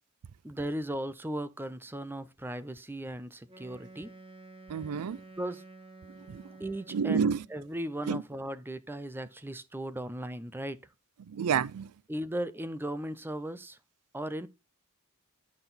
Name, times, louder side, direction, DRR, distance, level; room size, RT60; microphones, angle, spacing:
voice 1, 0.4-4.1 5.4-5.6 6.6-10.8 12.1-13.8 14.1-14.5, right 1 dB, 10° right, 0.5 m, -37 dB
Wind instrument woodwind instrument, 3.5-7.6, right 2 dB, 25° right, 1.6 m, -51 dB
voice 2, 4.7-5.2 6.2-6.4 6.9-7.4 8.1-8.2 11.3-11.9, right 6 dB, 85° right, 0.4 m, -29 dB
8.8 x 5.9 x 4.0 m
head